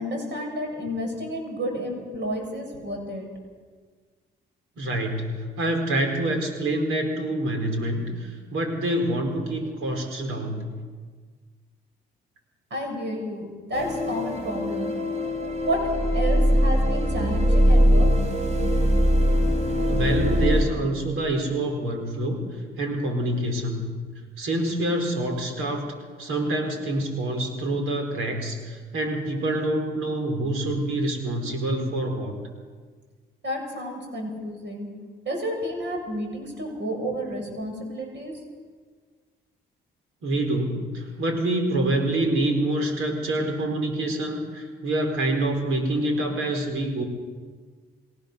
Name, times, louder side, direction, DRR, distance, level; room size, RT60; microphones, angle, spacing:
voice 1, 0.0-3.3 12.7-14.9 15.6-18.1 33.4-34.9 35.2-38.4, equal, 55° right, 1 dB, 7.9 m, -31 dB
voice 2, 4.8-10.7 19.9-23.9 24.4-25.9 26.2-32.4 40.2-47.0, right 1 dB, 80° right, 4 dB, 4.5 m, -26 dB
sound 1, 13.7-20.7, equal, 30° right, 5.4 m, -21 dB
28.5 x 16.0 x 6.8 m, 1.5 s
supercardioid pair, 60°, 21 cm